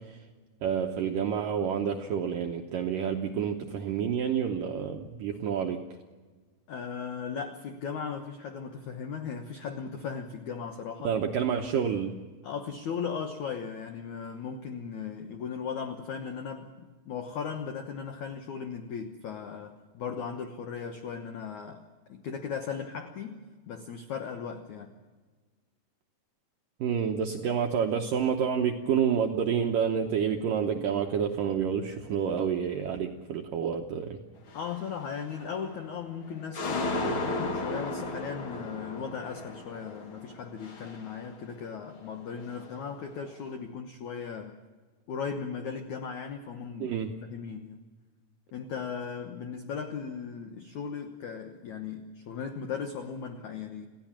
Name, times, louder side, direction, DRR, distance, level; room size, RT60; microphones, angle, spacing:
voice 1, 0.6-5.8 11.0-12.1 26.8-34.2 46.8-47.1, right 7 dB, 75° right, 3 dB, 2.0 m, -29 dB
voice 2, 6.7-11.2 12.4-21.8 22.1-24.9 34.5-44.6 45.1-47.8 48.5-53.9, left 6 dB, 85° left, 7 dB, 1.6 m, -37 dB
sound 1, 34.5-34.9 35.3-36.0 36.3-41.7 41.9-43.1, left 2 dB, 55° left, 1.5 m, -35 dB
28.0 x 16.0 x 7.4 m, 1.4 s
omnidirectional pair, 5.2 m